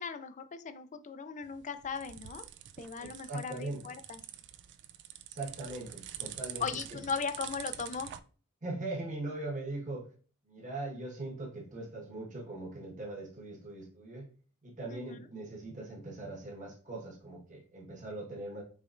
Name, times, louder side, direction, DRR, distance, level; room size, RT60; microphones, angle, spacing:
voice 1, 0.0-2.5 2.8-4.2 6.6-8.1 14.9-15.2, left 5 dB, 35° left, 11 dB, 0.4 m, -38 dB
sound 1, 1.4-8.2, right 11 dB, 50° right, 0.3 m, -46 dB
voice 2, 3.0-3.8 5.3-7.0 8.6-10.1 10.5-14.3 14.6-18.6, right 2 dB, 35° right, -2 dB, 1.3 m, -40 dB
4.8 x 3.2 x 2.5 m, 0.39 s
head